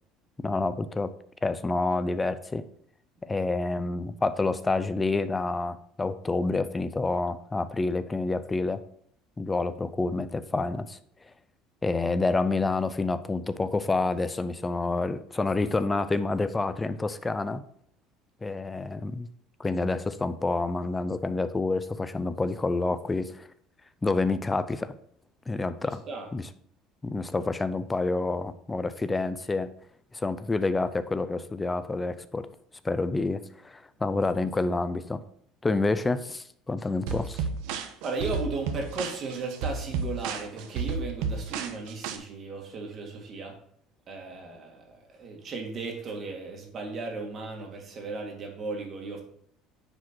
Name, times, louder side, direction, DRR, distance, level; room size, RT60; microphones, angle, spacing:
voice 1, 0.4-1.1 1.4-2.6 3.2-8.8 9.4-11.0 11.8-17.6 18.4-19.3 19.6-23.5 24.0-24.9 25.5-26.0 26.3-26.4 27.0-29.7 30.1-32.5 32.8-35.2 35.6-37.5, left 3 dB, 15° left, 13 dB, 0.4 m, -28 dB
sound 1, 37.1-42.2, right 5 dB, 80° right, 1.0 m, -32 dB
voice 2, 38.0-43.5 44.1-49.2, right 3 dB, 35° right, 2 dB, 2.1 m, -36 dB
9.7 x 5.0 x 4.5 m, 0.65 s
cardioid pair, 135°, 0 cm